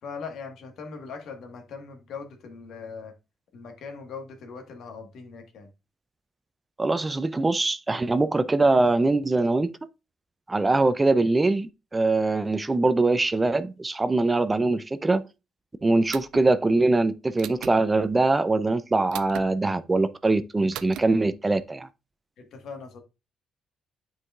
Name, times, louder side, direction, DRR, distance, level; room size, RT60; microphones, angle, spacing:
voice 1, 0.0-3.1 3.5-5.7 22.4-23.0, left 5 dB, 75° left, 1.4 m, -40 dB
voice 2, 6.8-9.7 10.5-15.2 15.8-21.9, right 2 dB, 20° right, 0.4 m, -22 dB
sound 1, 16.1-16.5 17.4-17.8 19.1-19.5 20.7-21.0, right 12 dB, 90° right, 0.3 m, -37 dB
8.8 x 4.7 x 2.3 m
cardioid pair, 90°, 0 cm